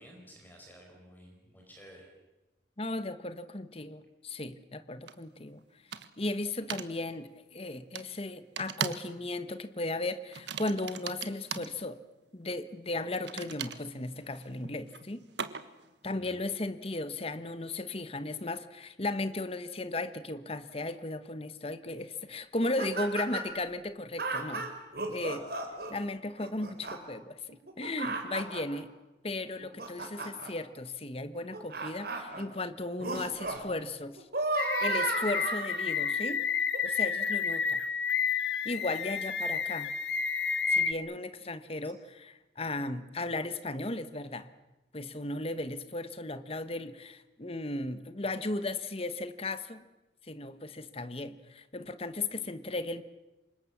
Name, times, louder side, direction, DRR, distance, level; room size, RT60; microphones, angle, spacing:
voice 1, 0.0-2.1 16.1-16.4, equal, 10° left, 0 dB, 5.3 m, -53 dB
voice 2, 2.8-5.6 6.2-12.0 12.3-15.3 16.0-24.7 25.1-25.4 25.9-28.9 29.2-34.3 34.8-36.4 36.8-37.8 38.6-39.9 40.7-44.5 44.9-49.8 50.3-53.0, left 2 dB, 35° left, 12 dB, 1.2 m, -36 dB
sound 1, 5.1-5.2 5.9-6.3 6.7-6.9 8.0-8.1 8.6-9.1 9.4-9.7 10.3-11.7 13.1-15.9, right 7 dB, 85° right, 1.4 m, -39 dB
sound 2, 22.6-23.6 24.2-25.9 26.4-27.0 27.5-28.8 29.4-30.5 31.3-32.4 33.0-33.6 34.0-36.1 36.7-36.8, right 3 dB, 60° right, 4.3 m, -34 dB
sound 3, 34.6-40.9, left 6 dB, 85° left, 1.4 m, -30 dB
28.0 x 25.0 x 7.3 m, 1.0 s
head